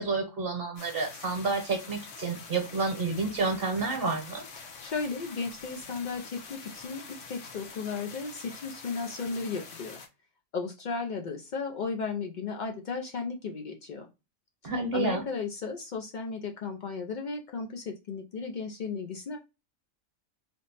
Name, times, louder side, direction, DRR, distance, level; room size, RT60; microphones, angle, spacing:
voice 1, 0.0-4.4 14.6-15.2, right 3 dB, 50° right, 4 dB, 1.0 m, -30 dB
sound 1, 0.8-10.1, left 5 dB, 65° left, 1.0 m, -46 dB
voice 2, 4.6-10.0 10.5-14.1 14.6-19.4, left 4 dB, 90° left, 3 dB, 0.4 m, -35 dB
3.3 x 2.1 x 3.9 m, 0.27 s
omnidirectional pair, 1.4 m